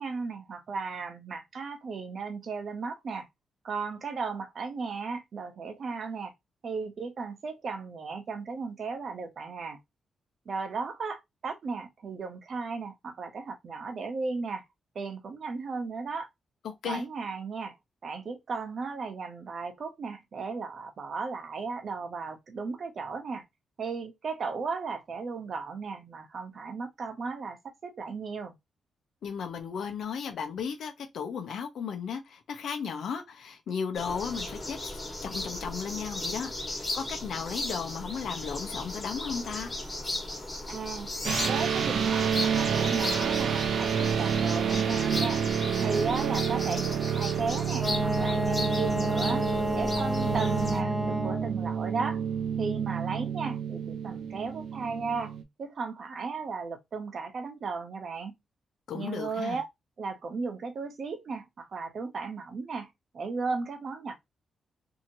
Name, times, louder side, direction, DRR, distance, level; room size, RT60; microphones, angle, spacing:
voice 1, 0.0-3.3 3.6-6.3 6.6-9.8 10.5-14.6 14.9-16.3 16.8-17.8 18.0-23.4 23.8-27.6 27.8-28.5 40.7-41.1 41.4-45.4 45.8-49.5 49.7-52.2 52.6-58.4 58.9-59.6 60.0-64.1, right 4 dB, 55° right, 0.8 m, -35 dB
voice 2, 16.6-17.0 29.2-39.7 58.9-59.6, left 6 dB, 75° left, 0.7 m, -35 dB
sound 1, 33.9-50.8, left 2 dB, 20° left, 1.4 m, -36 dB
sound 2, 41.2-55.4, right 8 dB, 75° right, 0.5 m, -29 dB
Wind instrument woodwind instrument, 47.8-51.5, left 1 dB, 5° left, 0.5 m, -30 dB
2.8 x 2.8 x 2.7 m
cardioid pair, 105°, 0 cm